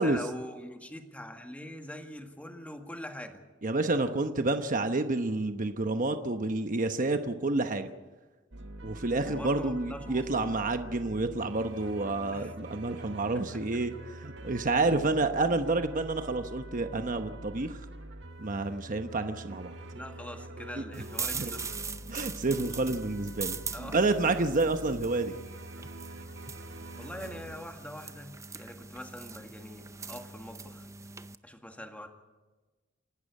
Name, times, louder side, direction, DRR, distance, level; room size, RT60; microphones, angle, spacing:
voice 1, 0.0-3.4 9.2-10.5 12.3-12.5 13.3-13.8 20.0-21.8 23.7-24.0 24.2-24.3 27.0-30.9 31.4-32.1, left 1 dB, 10° left, 4 dB, 1.9 m, -43 dB
voice 2, 3.6-7.9 8.8-13.9 14.2-17.8 18.4-19.7 21.3-21.5 22.1-23.6 23.9-25.3, right 2 dB, 45° right, 7 dB, 1.0 m, -29 dB
sound 1, 8.5-27.6, right 1 dB, 65° right, 1.6 m, -45 dB
sound 2, 20.9-31.4, right 5 dB, 15° right, 0.6 m, -41 dB
28.0 x 12.0 x 8.4 m, 1.2 s
head